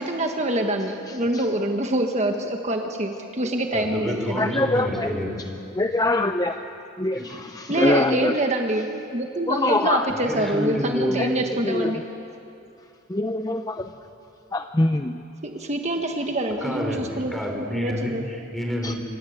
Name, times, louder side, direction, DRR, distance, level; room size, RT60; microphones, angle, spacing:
voice 1, 0.0-4.6 7.7-12.0 15.4-18.2, right 1 dB, 35° right, 3 dB, 1.5 m, -26 dB
voice 2, 3.7-5.7 7.1-7.3 10.1-11.3 16.6-19.0, equal, ahead, 1 dB, 4.3 m, -29 dB
voice 3, 4.4-5.1 5.8-6.6 7.0-8.3 9.5-10.1 11.2-11.3 11.6-11.9 13.1-13.9 14.5-15.2 18.8-18.9, left 2 dB, 20° left, 7 dB, 0.6 m, -23 dB
26.5 x 26.0 x 8.0 m, 2.7 s
head